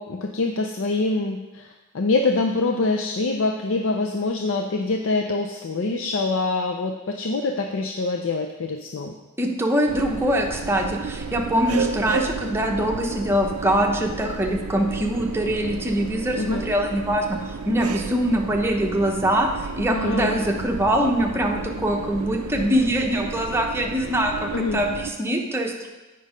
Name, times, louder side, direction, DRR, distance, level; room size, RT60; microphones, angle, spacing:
voice 1, 0.0-9.1 16.3-16.6 19.9-20.4 24.5-24.8, left 3 dB, 60° left, 3 dB, 0.5 m, -25 dB
voice 2, 9.4-25.9, equal, 10° right, 1 dB, 0.8 m, -23 dB
sound 1, 9.9-25.1, right 5 dB, 75° right, 0.4 m, -33 dB
8.4 x 5.4 x 5.0 m, 1.1 s
head